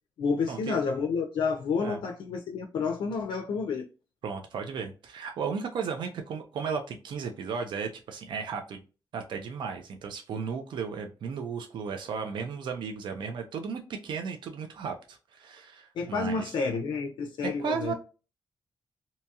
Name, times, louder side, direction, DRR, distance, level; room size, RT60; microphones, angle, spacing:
voice 1, 0.2-3.9 16.0-17.9, left 5 dB, 85° left, 0.4 m, -30 dB
voice 2, 4.2-8.8 9.1-16.5 17.6-17.9, right 5 dB, 80° right, 0.4 m, -35 dB
2.7 x 2.3 x 2.7 m
cardioid pair, 100°, 8 cm